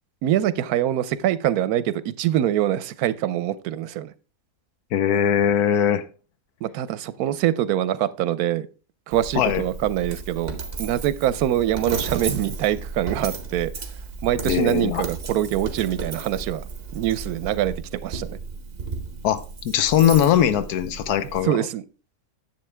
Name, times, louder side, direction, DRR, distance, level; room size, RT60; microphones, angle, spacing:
voice 1, 0.2-4.1 6.6-8.7 9.1-13.9 14.2-18.4 21.4-21.8, right 12 dB, 85° right, 17 dB, 1.1 m, -24 dB
voice 2, 4.9-6.0 9.3-9.6 14.4-15.0 19.2-21.6, left 9 dB, 90° left, 12 dB, 1.3 m, -20 dB
Coin (dropping), 9.1-21.4, right 4 dB, 45° right, 1.4 m, -34 dB
10.5 x 7.5 x 3.3 m, 0.35 s
omnidirectional pair, 1.6 m